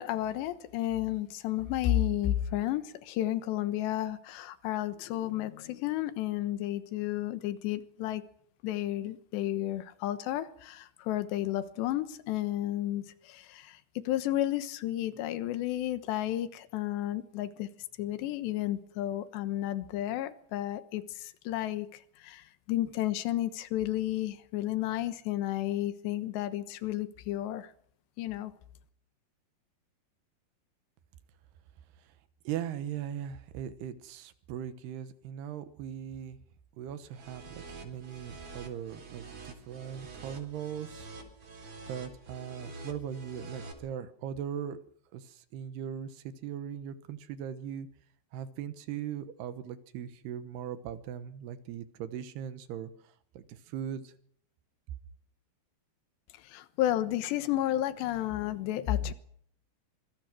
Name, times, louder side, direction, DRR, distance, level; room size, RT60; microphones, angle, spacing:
voice 1, 0.0-8.2 8.6-17.7 18.0-27.7 28.2-28.5 56.4-59.1, left 13 dB, 85° left, 12 dB, 3.4 m, -32 dB
voice 2, 32.4-36.4 36.8-41.1 41.9-44.8 45.1-47.9 48.3-54.1, right 9 dB, 75° right, 12 dB, 3.1 m, -39 dB
sound 1, 37.1-43.7, right 3 dB, 40° right, 4.9 m, -46 dB
25.5 x 23.5 x 6.1 m, 0.65 s
omnidirectional pair, 4.9 m